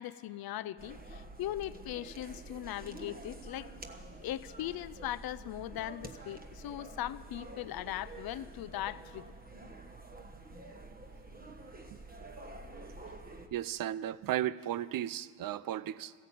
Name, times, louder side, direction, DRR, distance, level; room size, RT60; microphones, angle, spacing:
voice 1, 0.0-3.7 4.2-9.3, left 13 dB, 70° left, 17 dB, 0.6 m, -39 dB
sound 1, 0.8-13.5, right 2 dB, 25° right, 1.2 m, -48 dB
voice 2, 13.5-16.1, right 12 dB, 60° right, 17 dB, 0.6 m, -35 dB
15.0 x 10.5 x 8.5 m, 2.2 s
cardioid pair, 80°, 38 cm